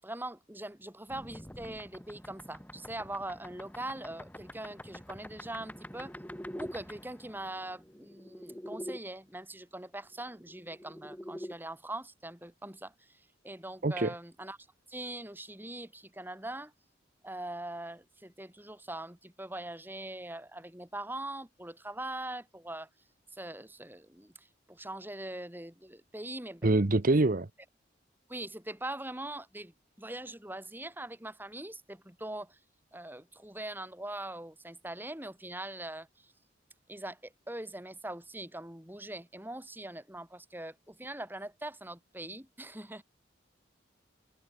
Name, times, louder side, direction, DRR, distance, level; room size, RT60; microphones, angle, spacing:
voice 1, 0.0-6.1 6.5-14.6 14.9-16.7 17.2-22.9 23.3-26.8 28.3-32.6 32.9-36.3 36.9-43.0, right 1 dB, 10° right, 6.3 m, -42 dB
sound 1, 1.1-9.0 10.3-11.5, equal, 10° left, 5.2 m, -45 dB
voice 2, 13.8-14.1 26.6-27.5, right 2 dB, 50° right, 0.9 m, -25 dB
head